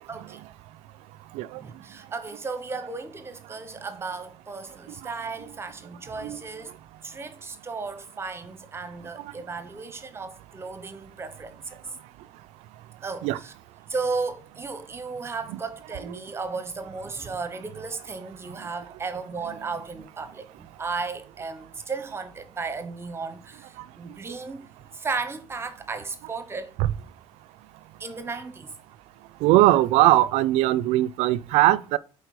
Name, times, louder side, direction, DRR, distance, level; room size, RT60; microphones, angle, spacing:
voice 1, 0.1-0.4 1.6-6.7 7.0-11.8 13.0-13.5 13.9-24.7 24.9-26.7 28.0-28.7, right 4 dB, 25° right, 0.8 m, -35 dB
voice 2, 29.4-32.0, right 16 dB, 85° right, 0.4 m, -20 dB
8.1 x 4.3 x 4.6 m
cardioid pair, 125°, 11 cm